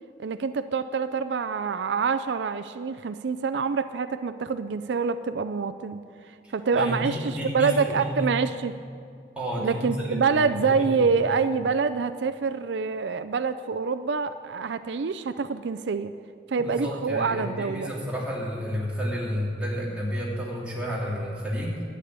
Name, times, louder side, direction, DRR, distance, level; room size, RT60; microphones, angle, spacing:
voice 1, 0.2-8.8 9.6-16.1 16.5-17.9, right 5 dB, 75° right, 10 dB, 0.4 m, -26 dB
voice 2, 6.4-8.3 9.3-11.1 16.6-21.8, equal, 5° right, -6 dB, 2.7 m, -31 dB
11.5 x 8.3 x 9.5 m, 2.3 s
head